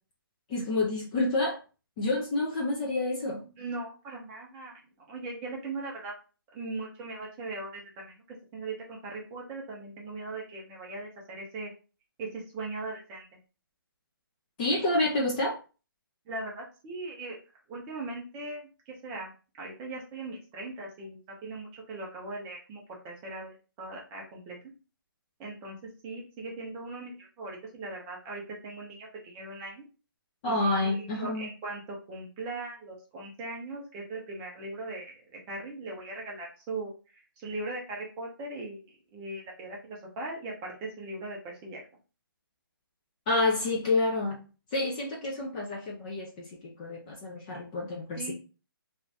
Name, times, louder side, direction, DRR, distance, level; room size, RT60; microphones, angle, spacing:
voice 1, 0.5-1.6 2.0-3.5 14.6-15.6 30.4-31.5 43.3-44.4 44.7-48.3, left 2 dB, 20° left, -2 dB, 0.5 m, -28 dB
voice 2, 3.6-4.8 5.1-6.1 6.5-8.2 8.5-11.7 12.2-13.2 16.3-17.4 17.7-19.3 19.6-24.6 25.4-25.8 26.0-29.8 30.4-36.9 37.4-38.8 39.1-41.8 48.2-48.3, right 2 dB, 15° right, -2 dB, 0.7 m, -39 dB
2.6 x 2.4 x 3.2 m, 0.34 s
hypercardioid pair, 155°, 12 cm